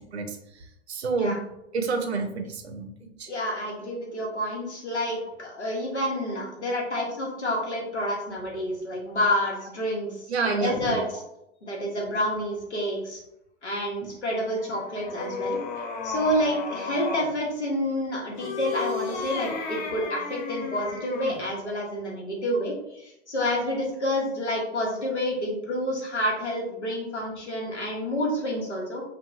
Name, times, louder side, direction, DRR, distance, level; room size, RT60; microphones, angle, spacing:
voice 1, 0.9-1.4 1.7-2.9 3.2-3.3 6.3-6.4 7.0-7.1 10.3-11.0 14.0-14.1, right 4 dB, 75° right, 6 dB, 0.6 m, -28 dB
voice 2, 3.3-10.2 10.4-11.2 11.6-13.2 13.6-15.6 16.0-29.0, equal, 85° left, -2 dB, 0.9 m, -29 dB
sound 1, 14.4-17.4 18.3-21.5, left 5 dB, 45° left, 0.5 m, -34 dB
2.8 x 2.3 x 2.3 m, 0.84 s
figure-of-eight pair, 95°, 33 cm